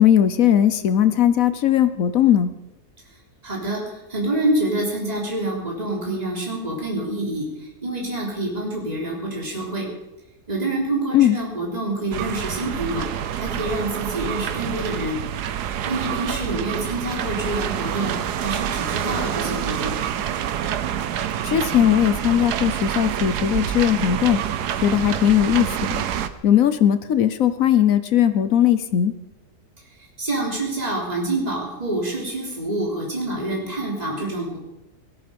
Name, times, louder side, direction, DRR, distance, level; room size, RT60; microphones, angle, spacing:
voice 1, 0.0-2.5 11.1-11.4 21.4-24.4 24.8-26.0 26.4-29.1, left 10 dB, 60° left, 12 dB, 1.1 m, -18 dB
voice 2, 3.4-3.8 4.1-7.5 7.8-9.9 10.5-13.1 13.4-15.2 15.9-19.9 30.2-34.6, right 1 dB, 25° right, -3 dB, 3.7 m, -27 dB
sound 1, 12.1-26.3, right 9 dB, 80° right, 1.4 m, -27 dB
18.0 x 13.5 x 5.3 m, 0.94 s
omnidirectional pair, 1.7 m